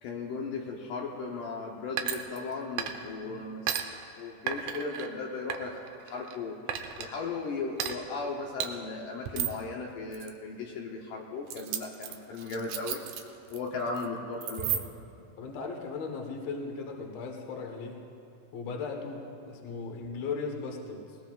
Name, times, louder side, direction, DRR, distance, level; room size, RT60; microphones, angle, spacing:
voice 1, 0.0-3.7 4.2-13.0 13.5-14.8, left 4 dB, 75° left, -1 dB, 2.4 m, -36 dB
sound 1, 2.0-3.2 3.7-3.8 4.5-5.1 5.5-6.4 6.7-7.1 7.8-7.9 8.6-8.7 9.3-9.6 10.1-10.3 11.5-13.6 13.9-14.1 14.4-15.1, right 9 dB, 75° right, 2.0 m, -33 dB
voice 2, 15.4-18.0 18.5-21.2, left 4 dB, 55° left, 1 dB, 2.2 m, -37 dB
21.0 x 19.5 x 2.4 m, 2.5 s
omnidirectional pair, 4.1 m